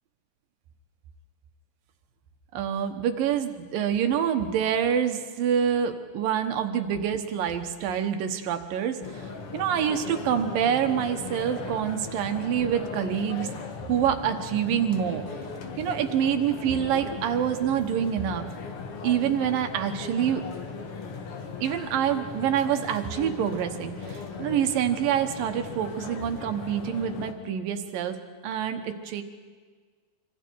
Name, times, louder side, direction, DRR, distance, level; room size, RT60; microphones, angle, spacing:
voice 1, 2.5-13.5 13.9-15.2 15.8-18.5 19.0-20.4 21.6-28.2 28.4-29.2, right 9 dB, 80° right, 7 dB, 3.0 m, -26 dB
sound 1, 9.0-27.3, left 5 dB, 50° left, 2.0 m, -38 dB
26.0 x 25.5 x 4.7 m, 1.5 s
omnidirectional pair, 4.0 m